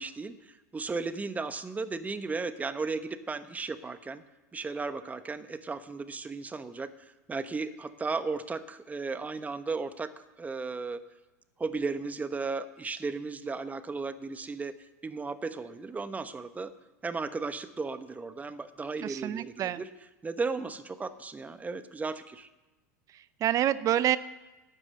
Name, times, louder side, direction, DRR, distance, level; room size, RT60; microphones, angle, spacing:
voice 1, 0.0-4.2 4.5-6.9 7.3-11.0 11.6-14.7 15.0-16.7 17.0-19.9 20.2-22.5, right 4 dB, 15° right, 11 dB, 1.1 m, -35 dB
voice 2, 19.0-19.8 23.1-24.2, right 11 dB, 40° right, 17 dB, 0.6 m, -28 dB
13.0 x 9.6 x 7.6 m, 1.1 s
hypercardioid pair, 85°, 9 cm